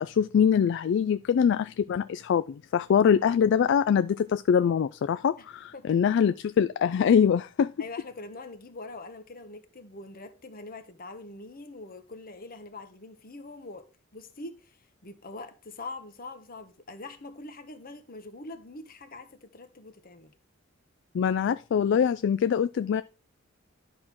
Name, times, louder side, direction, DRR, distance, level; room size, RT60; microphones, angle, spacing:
voice 1, 0.0-7.7 21.1-23.0, left 7 dB, 60° left, 0.3 m, -23 dB
voice 2, 7.8-13.8 14.1-20.3, left 2 dB, 45° left, 1.1 m, -43 dB
11.0 x 3.7 x 6.0 m
head